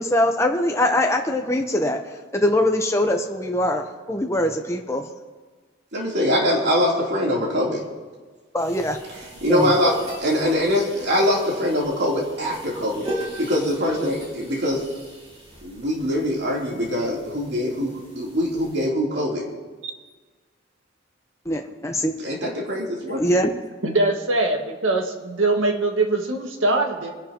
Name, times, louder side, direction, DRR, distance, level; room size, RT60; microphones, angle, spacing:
voice 1, 0.0-2.0 2.3-5.0 8.5-9.0 9.5-9.7 21.5-22.1 23.2-23.5, left 1 dB, 15° left, 3 dB, 0.8 m, -22 dB
voice 2, 5.9-7.8 9.4-13.1 13.4-14.8 15.6-19.4 22.2-23.2, left 1 dB, 60° right, -3 dB, 3.2 m, -23 dB
sound 1, 8.6-18.9, equal, 30° right, 2.7 m, -38 dB
voice 3, 23.8-27.1, right 2 dB, 90° right, 3 dB, 1.8 m, -22 dB
25.0 x 11.0 x 3.0 m, 1.4 s
head